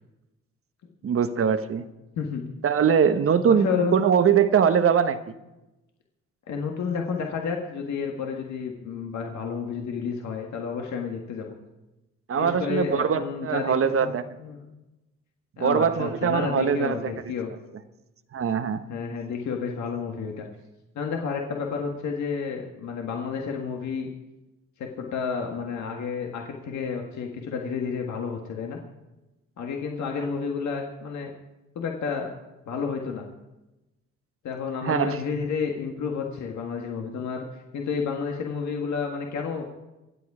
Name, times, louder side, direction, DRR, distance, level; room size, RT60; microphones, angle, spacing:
voice 1, 1.0-1.8 2.6-5.2 12.3-14.2 15.6-17.1 18.3-18.8 34.8-35.2, right 7 dB, 45° right, 11 dB, 1.1 m, -22 dB
voice 2, 3.5-4.0 6.5-11.6 12.3-13.7 14.0-14.1 14.4-14.6 15.6-17.5 18.9-20.5 21.0-24.1 24.8-28.8 29.6-31.3 31.8-32.3 32.7-33.3 34.4-39.6, left 5 dB, 70° left, 1 dB, 1.8 m, -30 dB
24.0 x 8.5 x 4.9 m, 1.0 s
cardioid pair, 90°, 30 cm